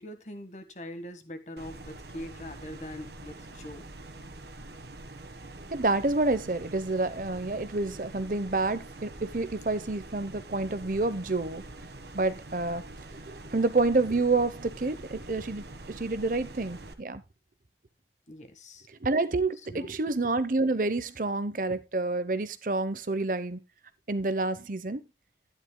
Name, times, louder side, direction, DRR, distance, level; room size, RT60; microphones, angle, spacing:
voice 1, 0.0-3.9 18.3-18.9 19.7-20.0, equal, 40° left, 1.5 m, -42 dB
sound 1, 1.6-16.9, right 2 dB, 70° right, 1.5 m, -45 dB
voice 2, 5.7-11.6 12.1-12.9 13.3-17.2 19.0-23.6 24.1-25.0, right 3 dB, 50° right, 0.8 m, -28 dB
12.0 x 10.5 x 2.2 m
head